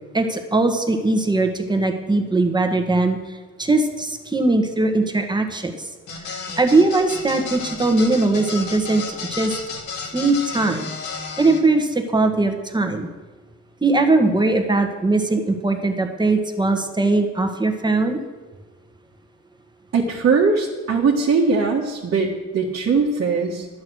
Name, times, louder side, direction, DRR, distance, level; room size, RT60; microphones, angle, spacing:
voice 1, 0.1-5.9 6.3-9.6 10.1-10.9 11.4-13.1 13.8-18.2, right 2 dB, 15° right, 5 dB, 1.5 m, -20 dB
sound 1, 6.1-11.6, left 4 dB, 75° left, 2.6 m, -32 dB
voice 2, 19.9-23.7, right 4 dB, 50° right, -3 dB, 1.6 m, -20 dB
11.0 x 8.6 x 6.3 m, 1.3 s
cardioid pair, 90°, 30 cm